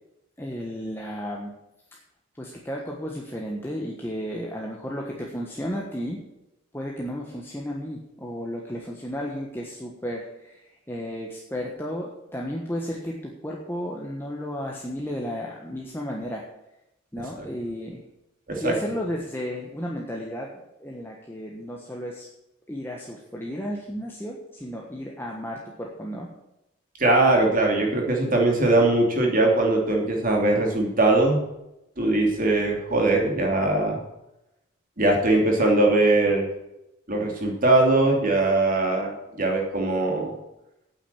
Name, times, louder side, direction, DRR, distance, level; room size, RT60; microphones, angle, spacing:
voice 1, 0.4-1.5 1.9-2.0 2.4-6.2 6.7-16.4 17.1-18.0 18.6-22.3 22.7-26.3, equal, 10° left, -2 dB, 1.3 m, -33 dB
voice 2, 27.0-31.4 32.0-34.0 35.0-36.5 37.1-40.4, right 2 dB, 40° right, 1 dB, 2.9 m, -21 dB
9.0 x 8.7 x 8.5 m, 0.89 s
head